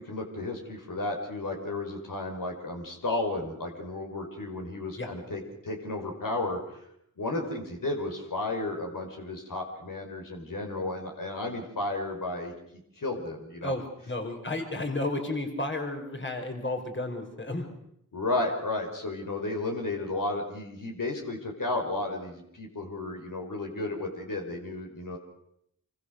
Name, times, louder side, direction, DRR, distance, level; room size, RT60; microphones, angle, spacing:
voice 1, 0.0-6.6 7.2-12.5 13.0-13.7 18.1-25.2, left 2 dB, 60° left, 2 dB, 5.3 m, -33 dB
voice 2, 13.6-17.7, left 2 dB, 30° left, 5 dB, 5.3 m, -32 dB
26.5 x 24.5 x 6.7 m, 0.74 s
cardioid pair, 55°, 36 cm